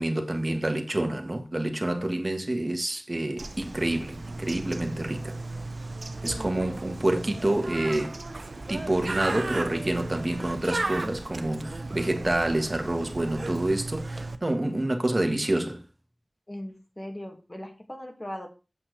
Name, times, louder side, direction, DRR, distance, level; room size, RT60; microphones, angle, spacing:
voice 1, 0.0-5.4 6.2-8.2 8.7-15.8, right 1 dB, 45° right, 1.6 m, -28 dB
Bird, 3.4-14.4, right 2 dB, 80° right, 0.9 m, -35 dB
voice 2, 16.5-18.5, left 1 dB, 30° left, 2.5 m, -39 dB
8.2 x 5.7 x 6.6 m
wide cardioid pair, 40°, 0 cm